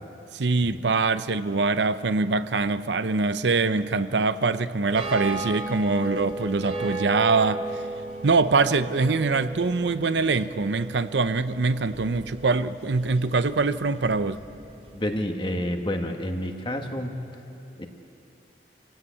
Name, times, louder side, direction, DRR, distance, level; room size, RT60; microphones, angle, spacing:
voice 1, 0.3-7.7 8.2-14.4, right 3 dB, 80° right, 13 dB, 0.7 m, -23 dB
sound 1, 4.9-15.2, right 2 dB, 35° right, 2.9 m, -36 dB
voice 2, 14.9-17.1 17.8-17.9, left 1 dB, 30° left, 4 dB, 1.6 m, -29 dB
27.5 x 16.5 x 8.5 m, 2.8 s
head